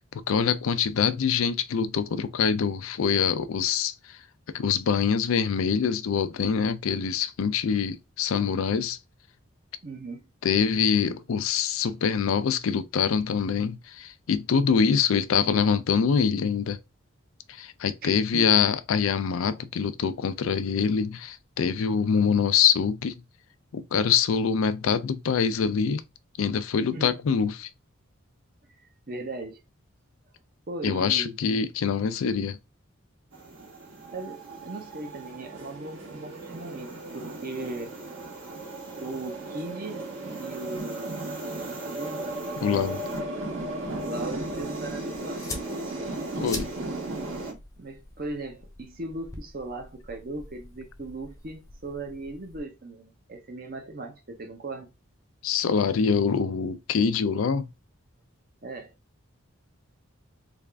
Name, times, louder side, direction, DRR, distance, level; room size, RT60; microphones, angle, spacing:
voice 1, 0.0-4.2 4.5-9.0 10.4-16.8 17.5-23.2 23.7-26.0 26.4-27.7 30.8-32.6 42.6-43.0 46.4-46.7 55.4-57.7, left 6 dB, 80° left, 0.4 m, -25 dB
voice 2, 9.8-10.2 18.0-18.5 26.9-27.2 29.1-29.6 30.7-31.4 34.1-38.0 38.9-40.0 40.4-42.2 44.0-45.6 47.8-54.9 58.6-58.9, right 2 dB, 45° right, 0.7 m, -38 dB
sound 1, 33.3-47.5, right 2 dB, 75° right, 1.8 m, -36 dB
sound 2, 42.9-52.6, left 2 dB, 15° left, 0.4 m, -45 dB
3.4 x 2.4 x 3.3 m
head